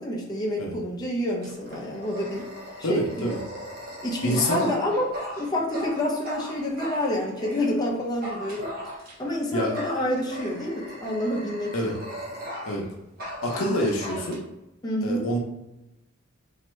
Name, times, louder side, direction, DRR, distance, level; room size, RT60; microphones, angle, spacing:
voice 1, 0.0-2.5 2.9-3.3 4.0-8.7 9.2-12.0 14.8-15.2, left 1 dB, 20° left, -3 dB, 0.8 m, -28 dB
Dog, 1.4-7.6 8.2-9.3 9.7-12.9 13.2-14.4, equal, 45° right, 1.1 m, -38 dB
voice 2, 2.8-3.4 4.2-4.7 9.5-9.8 11.7-12.0 12.7-12.8 13.4-14.4 15.0-15.4, equal, 80° left, 0 dB, 0.8 m, -26 dB
4.2 x 2.8 x 3.2 m, 0.93 s
head